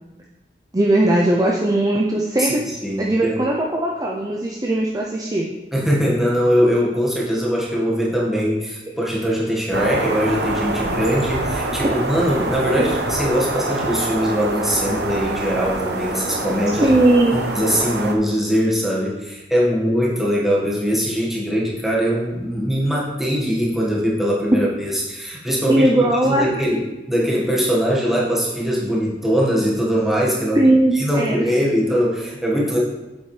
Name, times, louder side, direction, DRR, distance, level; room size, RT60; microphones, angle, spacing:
voice 1, 0.7-2.6 3.0-5.5 16.8-17.3 25.7-26.5 30.6-31.5, right 1 dB, 20° right, -1 dB, 0.5 m, -18 dB
voice 2, 2.4-3.4 5.7-16.9 17.3-25.9 26.2-30.6 30.9-32.8, equal, ahead, -5 dB, 1.5 m, -21 dB
sound 1, 9.7-18.1, right 2 dB, 70° right, 0.8 m, -25 dB
8.5 x 7.3 x 3.2 m, 1.1 s
head